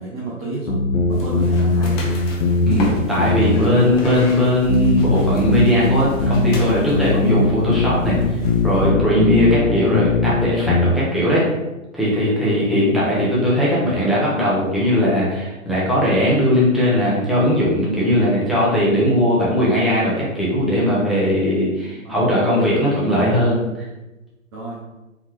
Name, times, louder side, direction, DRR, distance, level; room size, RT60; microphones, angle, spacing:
voice 1, 0.0-2.1 11.1-11.4 22.0-22.2 24.5-24.8, right 2 dB, 20° right, -5 dB, 0.5 m, -31 dB
sound 1, 0.7-10.9, left 3 dB, 55° left, 0.9 m, -20 dB
sound 2, 1.1-8.9, left 2 dB, 25° left, 0.9 m, -33 dB
voice 2, 2.6-11.4 11.9-23.6, equal, ahead, -8 dB, 0.8 m, -19 dB
4.2 x 3.9 x 3.1 m, 1.0 s
figure-of-eight pair, 130°, 42 cm